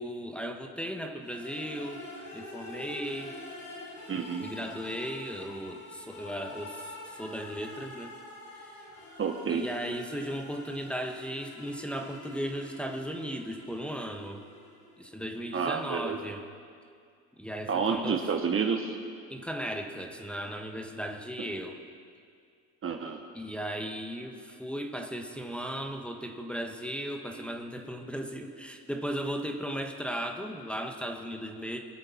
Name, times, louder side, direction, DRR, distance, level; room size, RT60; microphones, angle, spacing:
voice 1, 0.0-2.1 2.3-3.4 4.4-8.1 8.5-8.8 9.5-14.4 15.0-16.4 17.4-18.2 19.3-21.8 23.3-31.8, equal, 5° left, 2 dB, 1.3 m, -36 dB
sound 1, 1.2-15.1, left 2 dB, 45° left, 4.1 m, -46 dB
voice 2, 4.1-4.5 9.2-9.6 15.5-16.2 17.7-19.0 22.8-23.2, right 6 dB, 30° right, 4 dB, 1.1 m, -29 dB
23.0 x 7.7 x 4.4 m, 2.2 s
supercardioid pair, 95°, 41 cm